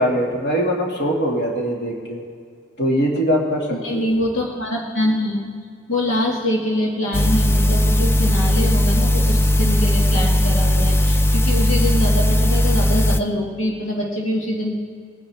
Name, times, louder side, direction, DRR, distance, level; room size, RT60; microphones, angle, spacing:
voice 1, 0.0-2.2 2.8-3.7 3.9-4.1, equal, 55° left, -2 dB, 2.4 m, -21 dB
voice 2, 3.7-5.5 5.9-14.7, left 1 dB, 85° left, -2 dB, 1.8 m, -24 dB
sound 1, 7.1-13.2, left 1 dB, 10° left, 0.3 m, -17 dB
20.5 x 9.8 x 3.6 m, 2.1 s
head